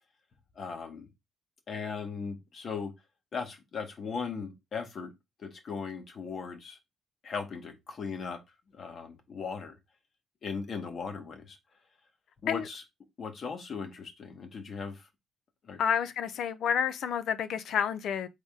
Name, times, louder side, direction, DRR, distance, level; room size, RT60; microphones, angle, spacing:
voice 1, 0.5-1.1 1.7-2.9 3.3-5.1 5.4-6.8 7.2-8.4 8.7-9.8 10.4-11.6 12.4-12.8 13.2-15.1 15.6-15.8, left 5 dB, 50° left, 1.3 m, -38 dB
voice 2, 15.8-18.3, left 8 dB, 70° left, 0.6 m, -29 dB
4.0 x 3.5 x 3.7 m
cardioid pair, 90°, 0 cm